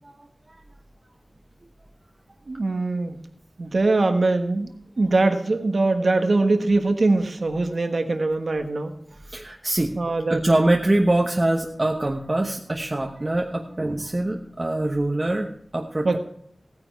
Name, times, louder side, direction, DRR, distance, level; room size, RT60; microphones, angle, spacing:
voice 1, 2.5-3.2 3.6-4.7 5.0-8.9 9.9-10.4 16.0-16.2, right 2 dB, 70° right, 6 dB, 1.3 m, -22 dB
voice 2, 9.3-9.9 10.3-16.2, right 1 dB, 35° right, 2 dB, 1.1 m, -24 dB
15.5 x 9.8 x 4.6 m, 0.66 s
wide cardioid pair, 65°, 0 cm